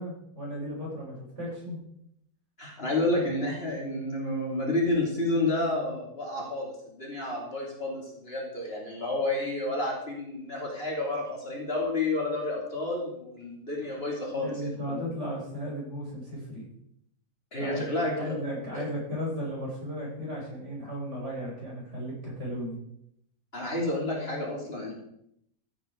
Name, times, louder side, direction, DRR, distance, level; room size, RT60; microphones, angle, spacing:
voice 1, 0.0-1.8 2.9-3.4 14.4-16.7 17.6-22.8, equal, 50° right, -4 dB, 6.1 m, -35 dB
voice 2, 2.6-15.0 17.5-18.3 18.7-18.8 23.5-24.9, left 2 dB, 40° left, -2 dB, 3.4 m, -30 dB
14.5 x 8.9 x 4.7 m, 0.74 s
omnidirectional pair, 1.6 m